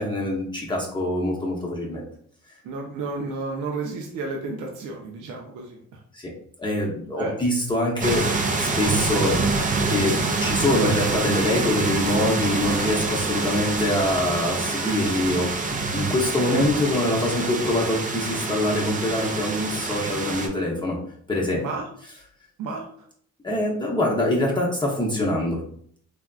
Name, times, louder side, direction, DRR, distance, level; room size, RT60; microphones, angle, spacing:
voice 1, 0.0-2.1 6.1-6.3 6.6-8.2 8.6-9.4 9.9-21.0 21.3-21.6 23.4-25.6, left 1 dB, 15° left, -4 dB, 0.6 m, -24 dB
voice 2, 2.6-6.0 7.2-7.4 16.5-16.7 21.5-21.9 22.6-22.9, right 3 dB, 80° right, 1 dB, 0.6 m, -32 dB
sound 1, 8.0-20.5, right 3 dB, 25° right, 0.5 m, -26 dB
3.4 x 2.4 x 2.3 m, 0.62 s
cardioid pair, 90°, 30 cm